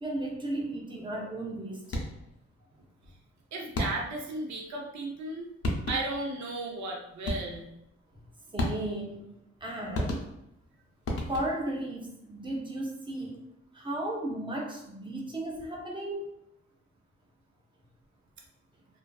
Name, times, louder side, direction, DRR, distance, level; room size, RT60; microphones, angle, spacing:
voice 1, 0.0-1.8 8.5-9.3 9.6-10.3 11.3-13.4 13.7-16.3, right 1 dB, 15° right, -2 dB, 0.6 m, -35 dB
sound 1, 1.8-2.3 3.7-4.3 5.3-5.4 5.6-6.3 7.3-7.7 8.6-9.1 9.9-10.6 11.1-11.7, left 1 dB, 50° left, 0.6 m, -33 dB
voice 2, 3.5-5.5 5.9-7.7, right 2 dB, 70° right, 0 dB, 0.7 m, -35 dB
2.4 x 2.4 x 2.3 m, 0.81 s
cardioid pair, 95°, 29 cm